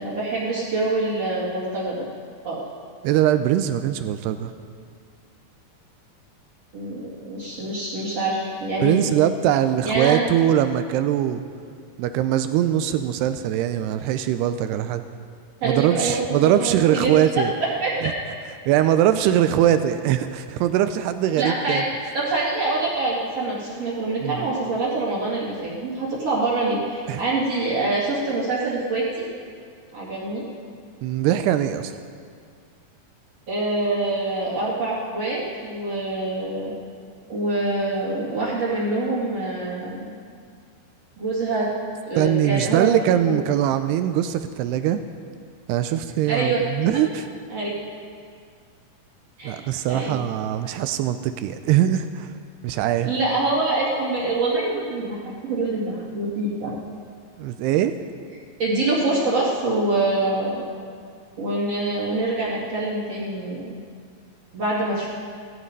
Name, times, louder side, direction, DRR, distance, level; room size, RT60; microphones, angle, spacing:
voice 1, 0.0-2.1 2.4-2.6 6.7-9.2 9.8-10.2 15.6-17.4 17.8-17.9 21.4-29.3 29.9-30.5 33.5-36.7 37.3-40.0 41.2-41.7 42.1-43.4 46.3-46.6 47.5-47.8 49.4-50.2 53.0-56.7 58.6-60.6 61.4-63.7 64.5-65.1, right 2 dB, 40° right, -6 dB, 2.8 m, -25 dB
voice 2, 3.0-4.5 8.8-11.4 12.0-15.0 15.6-17.5 18.0-18.1 18.7-21.8 24.2-24.5 27.1-27.2 31.0-31.9 42.2-45.0 45.7-47.3 49.4-52.3 52.6-53.1 57.4-57.9, right 11 dB, 85° right, 10 dB, 2.4 m, -21 dB
17.0 x 14.5 x 5.3 m, 2.1 s
omnidirectional pair, 5.1 m